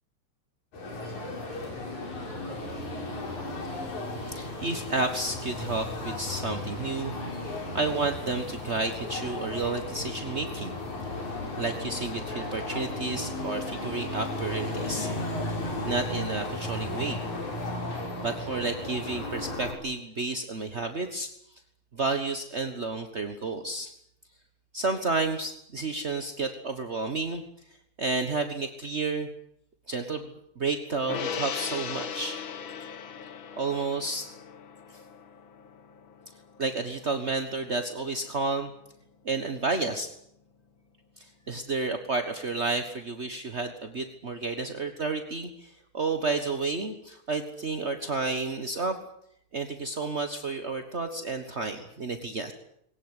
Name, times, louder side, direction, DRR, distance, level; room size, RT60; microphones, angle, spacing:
sound 1, 0.7-19.7, left 2 dB, 75° left, 6.4 m, -35 dB
voice 1, 4.2-7.1 7.4-10.7 11.3-15.1 15.5-17.2 18.2-21.3 21.9-23.9 24.7-27.4 28.0-29.3 29.9-30.3 30.6-32.4 33.6-34.3 36.6-38.7 39.2-40.1 41.2-49.0 49.5-52.5, right 3 dB, 40° right, 7 dB, 0.9 m, -31 dB
Gong, 31.1-37.7 38.0-38.2, left 7 dB, 50° left, 1.7 m, -38 dB
21.5 x 18.5 x 9.8 m, 0.73 s
omnidirectional pair, 3.4 m